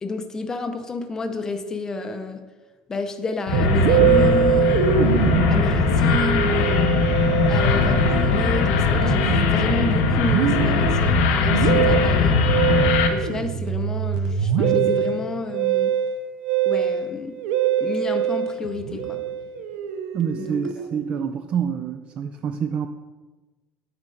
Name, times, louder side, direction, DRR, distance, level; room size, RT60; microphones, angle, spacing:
voice 1, 0.0-2.4 2.9-5.1 5.5-7.0 7.5-12.4 13.1-15.9 16.7-17.4 17.8-19.2 20.4-20.9, left 3 dB, 15° left, 6 dB, 0.6 m, -30 dB
sound 1, 3.5-13.1, left 4 dB, 90° left, 0.9 m, -20 dB
Musical instrument, 3.5-21.1, right 9 dB, 85° right, 0.6 m, -24 dB
voice 2, 20.1-22.9, right 7 dB, 35° right, 8 dB, 0.3 m, -27 dB
8.4 x 4.3 x 5.3 m, 1.2 s
cardioid pair, 165°, 4 cm